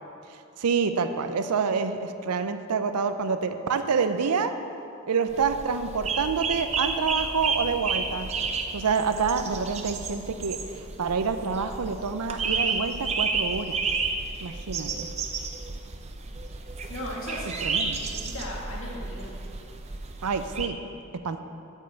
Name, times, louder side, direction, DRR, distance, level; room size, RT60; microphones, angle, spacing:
voice 1, 0.6-4.5 5.0-8.3 8.7-13.8 14.4-15.1 17.6-18.1 20.2-20.8 21.2-21.4, right 5 dB, 90° right, 9 dB, 0.6 m, -27 dB
sound 1, 5.3-20.7, right 4 dB, 30° right, 0.5 m, -31 dB
voice 2, 16.9-19.3, equal, 60° left, -4 dB, 2.1 m, -37 dB
8.4 x 5.4 x 7.7 m, 2.6 s
head